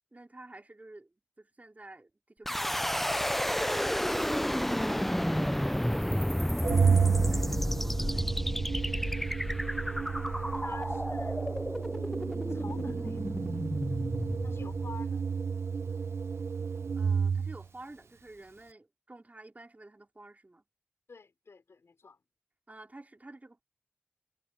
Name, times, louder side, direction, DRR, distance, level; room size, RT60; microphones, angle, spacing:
voice 1, 0.1-1.1 1.4-3.2 5.9-8.4 16.9-20.6 22.7-23.6, right 2 dB, 35° right, 4.5 m, -51 dB
sound 1, 2.5-15.4, equal, 5° left, 0.4 m, -31 dB
Organ, 6.6-17.6, right 6 dB, 85° right, 0.8 m, -31 dB
voice 2, 8.9-10.2 10.5-11.7 12.5-13.4 14.4-15.2 21.1-22.2, left 4 dB, 85° left, 3.9 m, -50 dB
wide cardioid pair, 55°, 4 cm